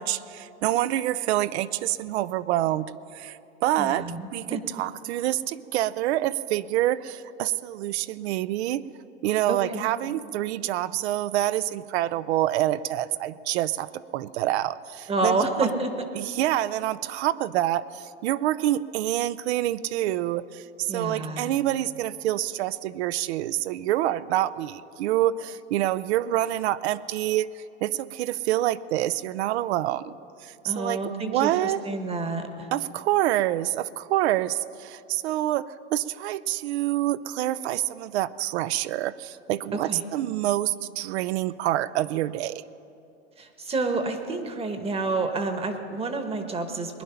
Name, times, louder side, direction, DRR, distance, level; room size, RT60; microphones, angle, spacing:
voice 1, 0.0-2.9 3.1-4.1 4.3-8.8 9.2-15.7 16.2-30.1 30.4-31.8 32.7-42.6, right 14 dB, 70° right, 17 dB, 0.6 m, -27 dB
voice 2, 3.8-4.6 9.5-9.9 15.1-15.9 20.9-21.5 30.6-32.7 39.7-40.0 43.4-47.0, right 3 dB, 15° right, 7 dB, 1.1 m, -29 dB
20.0 x 10.0 x 5.7 m, 2.6 s
supercardioid pair, 130°, 34 cm